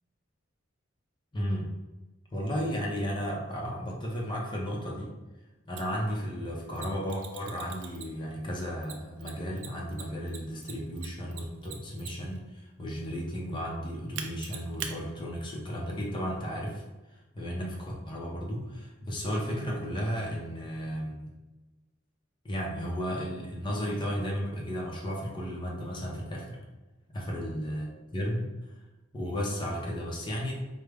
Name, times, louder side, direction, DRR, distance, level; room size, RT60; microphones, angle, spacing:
voice 1, 1.3-1.7 2.3-5.1 5.7-16.8 17.3-21.3 22.4-26.6 27.1-28.5 29.1-30.5, equal, 25° left, -2 dB, 0.6 m, -34 dB
Mechanisms, 5.8-5.9 6.7-8.3 8.8-12.4 14.1-14.9, right 8 dB, 65° right, 0.5 m, -41 dB
4.7 x 2.1 x 3.4 m, 1.1 s
head